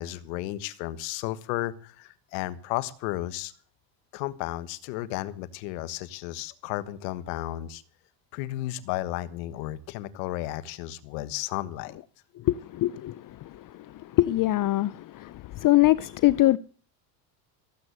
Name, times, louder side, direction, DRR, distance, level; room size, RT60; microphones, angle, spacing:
voice 1, 0.0-3.5 4.1-7.8 8.3-11.9, left 15 dB, 90° left, 1.5 m, -33 dB
voice 2, 12.8-13.1 14.2-14.9 15.6-16.6, left 16 dB, 40° left, 0.6 m, -21 dB
15.5 x 8.3 x 7.8 m
supercardioid pair, 115°, 49 cm